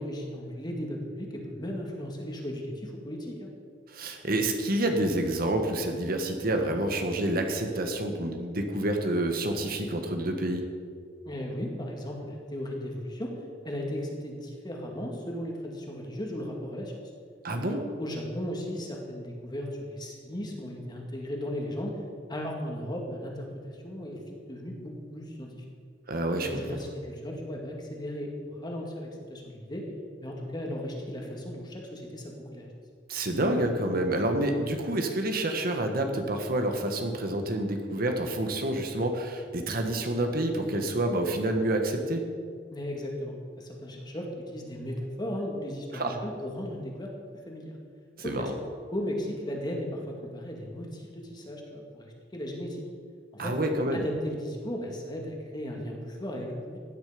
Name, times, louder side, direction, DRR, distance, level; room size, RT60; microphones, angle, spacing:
voice 1, 0.0-3.5 11.3-13.3 13.6-17.0 18.0-21.9 22.3-25.6 26.4-29.8 30.2-32.7 42.7-47.1 47.5-47.7 48.2-48.5 48.9-52.8 53.3-53.5 53.9-56.8, equal, 25° left, 0 dB, 2.2 m, -36 dB
voice 2, 3.9-10.6 17.4-17.8 26.1-26.6 33.1-42.2 45.9-46.2 48.2-48.5 53.4-54.0, right 1 dB, 55° right, 4 dB, 1.5 m, -28 dB
16.0 x 10.0 x 5.1 m, 2.1 s
head